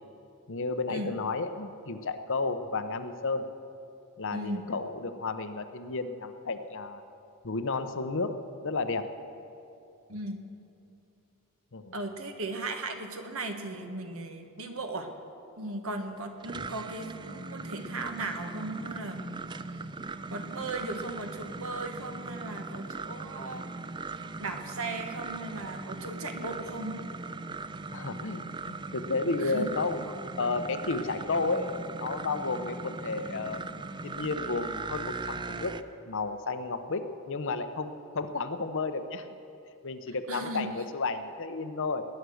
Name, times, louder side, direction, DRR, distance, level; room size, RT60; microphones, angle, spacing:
voice 1, 0.5-3.4 4.2-7.0 7.4-8.4 8.6-9.1 11.7-11.9 27.9-30.0 30.4-35.7 36.1-39.3 39.8-42.1, left 3 dB, 60° left, 9 dB, 0.8 m, -32 dB
voice 2, 4.3-4.7 10.1-10.4 11.9-15.1 15.6-19.4 20.3-23.7 24.4-27.0 29.4-29.7 40.3-40.7, right 2 dB, 65° right, 5 dB, 1.5 m, -37 dB
sound 1, 16.2-35.8, right 3 dB, 20° right, 0.4 m, -39 dB
19.5 x 9.7 x 6.4 m, 2.7 s
head